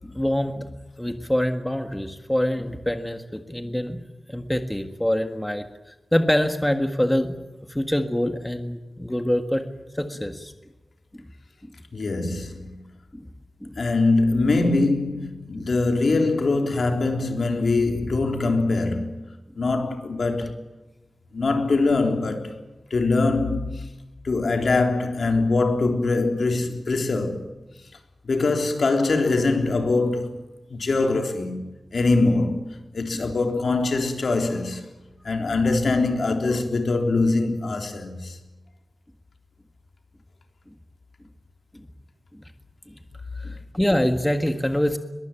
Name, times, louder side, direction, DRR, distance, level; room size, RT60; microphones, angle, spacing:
voice 1, 0.0-4.0 4.3-5.6 6.1-7.3 7.7-9.7 9.9-10.5 13.1-13.2 13.6-13.8 15.6-15.7 42.4-42.5 42.9-43.0 43.4-45.0, left 1 dB, 10° left, 1.7 m, -25 dB
voice 2, 11.9-12.8 13.8-19.3 19.6-20.6 21.3-22.6 22.9-23.8 24.2-27.4 28.3-30.4 30.7-31.6 31.9-34.8 35.2-38.4, left 3 dB, 65° left, 3.7 m, -23 dB
22.5 x 22.5 x 9.2 m
wide cardioid pair, 125°, 0 cm